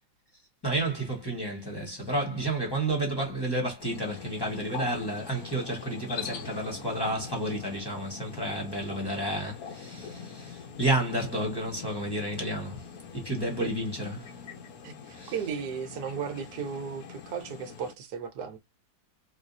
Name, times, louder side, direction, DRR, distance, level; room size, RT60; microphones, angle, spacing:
voice 1, 0.6-12.8 13.1-14.3 15.1-15.3, right 1 dB, 15° left, 1.1 m, -31 dB
sound 1, 3.8-17.9, left 6 dB, 65° left, 1.0 m, -43 dB
voice 2, 14.8-18.6, right 6 dB, 65° right, 1.3 m, -35 dB
3.9 x 2.6 x 2.6 m
omnidirectional pair, 2.0 m